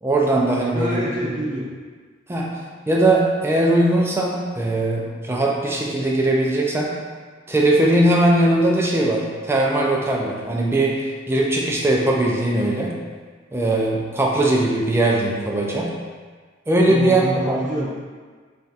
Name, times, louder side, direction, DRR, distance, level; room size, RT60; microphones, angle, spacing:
voice 1, 0.0-1.3 2.3-2.5 2.9-6.9 7.5-12.9 13.5-15.9 16.7-17.6, right 1 dB, 10° right, -2 dB, 0.3 m, -20 dB
voice 2, 0.7-1.7 16.8-17.9, equal, 40° right, -7 dB, 0.8 m, -26 dB
3.2 x 2.7 x 2.4 m, 1.5 s
head